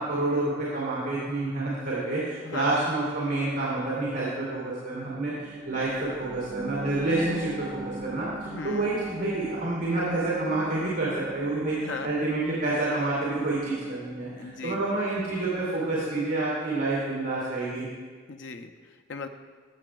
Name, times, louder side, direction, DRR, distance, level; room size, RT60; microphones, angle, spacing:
voice 1, 0.0-17.9, right 2 dB, 70° right, -7 dB, 2.4 m, -28 dB
voice 2, 2.4-2.9 8.5-8.9 11.7-12.1 14.3-15.0 18.3-19.3, left 4 dB, 70° left, 5 dB, 0.5 m, -38 dB
sound 1, 5.1-16.2 16.6-16.7, right 2 dB, 40° right, 1.9 m, -43 dB
15.0 x 7.0 x 2.3 m, 1.6 s
head